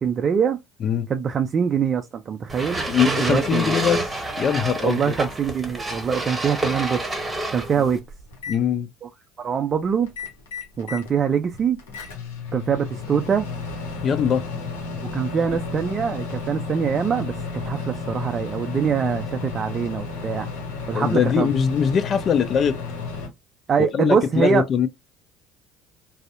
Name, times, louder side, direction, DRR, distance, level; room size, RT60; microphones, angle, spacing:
voice 1, 0.0-0.6 1.1-3.7 4.8-7.1 7.5-8.0 9.0-9.1 9.4-10.1 10.8-11.8 12.5-13.5 15.1-17.3 17.6-20.5 20.9-21.5 23.7-24.6, right 7 dB, 40° right, 0.3 m, -23 dB
sound 1, 2.5-8.0, right 2 dB, 15° right, 0.9 m, -28 dB
voice 2, 2.9-4.1 4.4-5.1 7.8-7.9 8.5-8.9 14.0-14.5 20.9-22.8 23.8-24.9, left 7 dB, 50° left, 0.4 m, -22 dB
Microwave oven, 8.0-8.6 10.0-11.1 11.5-23.3, left 4 dB, 85° left, 0.8 m, -33 dB
2.6 x 2.0 x 2.4 m
hypercardioid pair, 75°, 0 cm